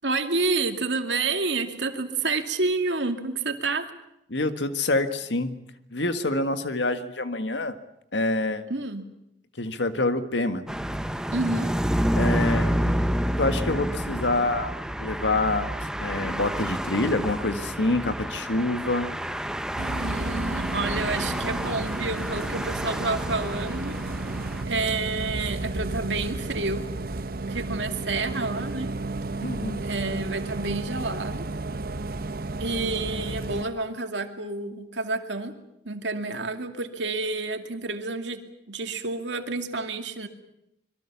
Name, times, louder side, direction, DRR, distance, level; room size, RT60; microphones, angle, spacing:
voice 1, 0.0-3.9 8.7-9.0 11.3-11.7 20.0-24.0 24.6-26.8 27.5-28.9 29.8-31.5 32.6-35.6 35.8-38.4 38.7-40.3, right 3 dB, 85° right, 6 dB, 2.5 m, -29 dB
voice 2, 4.3-5.5 5.9-7.8 8.1-8.6 9.6-10.6 12.2-13.0 13.4-14.7 15.0-19.1 29.4-29.8, left 2 dB, 80° left, 9 dB, 1.7 m, -26 dB
sound 1, 10.7-24.6, equal, 5° right, 0.8 m, -29 dB
Bus, 19.8-33.6, right 2 dB, 55° right, 0.9 m, -32 dB
26.0 x 22.5 x 7.1 m, 0.81 s
head